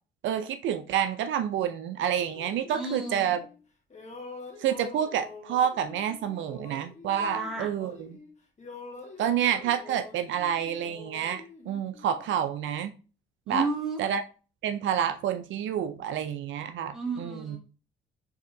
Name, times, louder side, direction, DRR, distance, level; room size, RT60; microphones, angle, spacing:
voice 1, 0.2-3.5 4.6-8.1 9.2-12.9 13.5-13.7 14.0-14.2 14.6-17.6, right 9 dB, 75° right, 9 dB, 0.5 m, -29 dB
sound 1, 2.2-3.6 3.9-8.3 8.6-12.4, left 3 dB, 35° left, 1.3 m, -46 dB
voice 2, 2.7-3.3 7.2-7.7 13.5-14.0 16.9-17.6, right 3 dB, ahead, -3 dB, 2.0 m, -32 dB
4.7 x 3.5 x 2.7 m, 0.35 s
cardioid pair, 90°, 20 cm